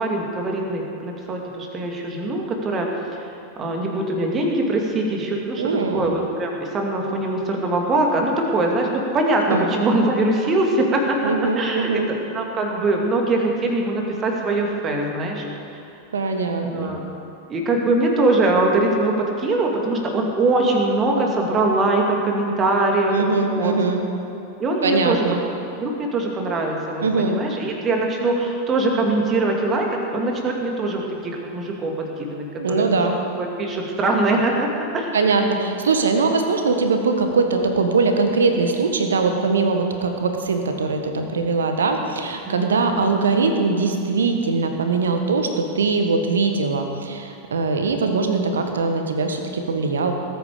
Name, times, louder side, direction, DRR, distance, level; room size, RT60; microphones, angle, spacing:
voice 1, 0.0-2.9 3.6-15.4 15.7-15.8 16.6-17.0 17.5-23.1 23.5-23.8 24.6-25.3 25.8-35.1 42.4-42.7, right 2 dB, 25° right, 1 dB, 2.3 m, -22 dB
voice 2, 5.6-6.1 9.5-9.7 11.2-12.1 16.1-16.9 23.1-24.0 24.8-25.4 27.0-27.4 32.6-33.2 35.1-50.1, right 4 dB, 65° right, 5 dB, 1.4 m, -21 dB
19.5 x 9.3 x 5.1 m, 2.9 s
figure-of-eight pair, 90°, 0 cm